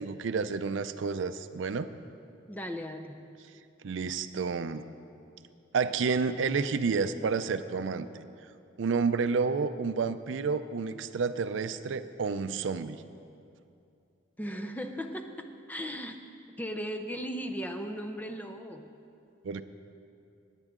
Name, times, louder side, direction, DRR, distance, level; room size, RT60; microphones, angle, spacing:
voice 1, 0.0-1.9 3.8-4.8 5.7-8.1 8.8-13.0 19.4-19.6, right 5 dB, 70° right, 11 dB, 0.4 m, -30 dB
voice 2, 2.5-3.3 14.4-16.3 16.6-18.9, equal, 10° left, 5 dB, 0.5 m, -37 dB
19.0 x 9.0 x 3.7 m, 2.6 s
head